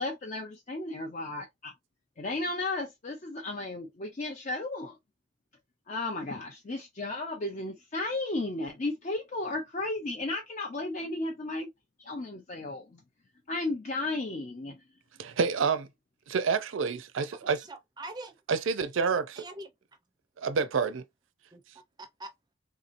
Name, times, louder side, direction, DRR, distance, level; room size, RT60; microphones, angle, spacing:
voice 1, 0.0-1.7 2.2-4.9 5.9-11.7 12.0-13.0 13.5-14.7, left 2 dB, 35° left, 0.5 m, -34 dB
voice 2, 15.2-15.9 16.3-17.6 18.5-19.4 20.4-21.0, right 5 dB, 70° right, 0.4 m, -28 dB
voice 3, 17.4-18.3 19.4-19.7 21.5-22.5, right 2 dB, 20° right, 0.6 m, -44 dB
3.6 x 2.7 x 2.5 m
head